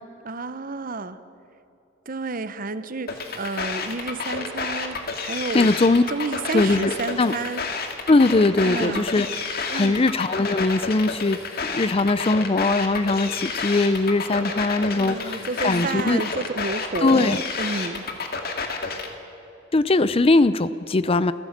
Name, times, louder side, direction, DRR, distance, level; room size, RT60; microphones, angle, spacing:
voice 1, 0.2-1.2 2.1-5.7 6.1-7.6 8.6-9.1 9.7-10.0 15.0-18.0, right 3 dB, 45° right, 13 dB, 0.9 m, -30 dB
sound 1, 3.1-19.1, left 4 dB, 50° left, 2.2 m, -30 dB
voice 2, 5.5-6.0 6.5-7.3 8.1-9.3 9.5-16.2 17.0-17.4 19.7-21.3, left 2 dB, 30° left, 15 dB, 0.5 m, -20 dB
27.5 x 15.0 x 7.4 m, 3.0 s
head